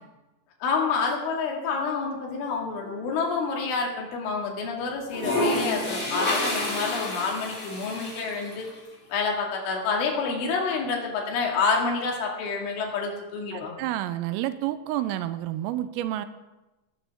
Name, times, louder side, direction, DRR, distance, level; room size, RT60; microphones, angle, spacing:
voice 1, 0.6-8.7 9.1-13.8, left 4 dB, 70° left, 0 dB, 4.5 m, -28 dB
sound 1, 2.8-3.6 4.9-8.7, left 1 dB, 15° left, 3.3 m, -29 dB
voice 2, 13.5-16.3, right 13 dB, 90° right, 12 dB, 3.3 m, -29 dB
15.0 x 13.5 x 3.5 m, 1.1 s
omnidirectional pair, 5.9 m